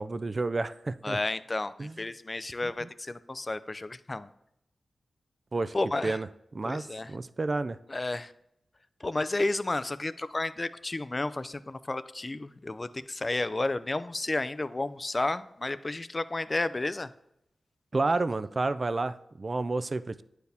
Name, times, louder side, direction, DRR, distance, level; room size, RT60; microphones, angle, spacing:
voice 1, 0.0-1.2 1.8-2.0 2.8-2.9 5.5-5.8 6.0-6.3 6.5-7.8 17.9-20.2, right 3 dB, 45° right, 14 dB, 0.3 m, -30 dB
voice 2, 1.0-4.3 5.7-6.2 6.6-7.1 7.9-8.3 9.0-17.1, left 2 dB, 35° left, 15 dB, 0.4 m, -32 dB
9.3 x 4.6 x 3.4 m, 0.81 s
cardioid pair, 50°, 0 cm